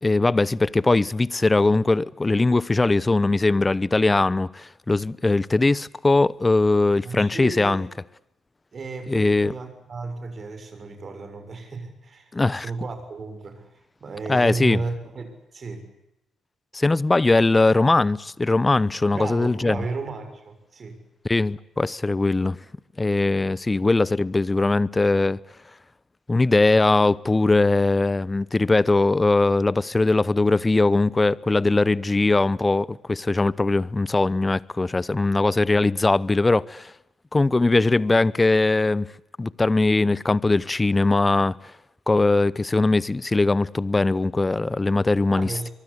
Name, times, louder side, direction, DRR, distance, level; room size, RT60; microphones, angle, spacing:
voice 1, 0.0-7.9 9.1-9.5 12.3-12.7 14.3-14.8 16.7-19.8 21.2-22.6 23.0-25.4 26.3-36.9 37.3-39.1 39.4-41.6 42.1-45.7, left 2 dB, 25° left, 0.9 m, -20 dB
voice 2, 7.0-7.9 8.7-15.9 19.1-21.0 45.4-45.7, right 3 dB, 45° right, 6.6 m, -34 dB
24.0 x 23.5 x 8.5 m
hypercardioid pair, 45°, 0 cm